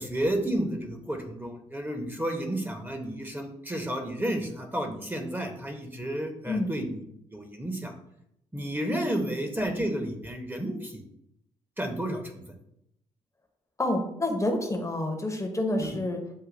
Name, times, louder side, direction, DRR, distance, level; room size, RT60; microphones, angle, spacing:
voice 1, 0.0-7.0 7.3-7.9 8.5-11.0 11.8-12.4 15.8-16.0, right 1 dB, 10° right, 4 dB, 0.9 m, -31 dB
voice 2, 13.8-16.2, left 1 dB, 20° left, 4 dB, 0.9 m, -28 dB
7.3 x 2.5 x 2.6 m, 0.79 s
hypercardioid pair, 40°, 16 cm